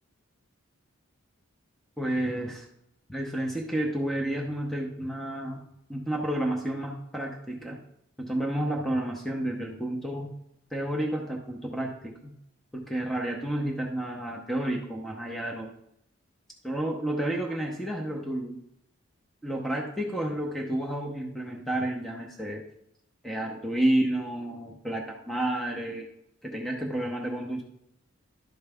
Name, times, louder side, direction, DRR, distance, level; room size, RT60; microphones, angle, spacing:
voice 1, 2.0-2.7 3.1-7.8 8.2-10.3 10.7-12.3 12.7-15.7 16.6-18.6 19.4-22.6 23.2-26.1 26.4-27.6, right 1 dB, ahead, 0 dB, 0.7 m, -30 dB
12.0 x 4.6 x 3.5 m, 0.77 s
head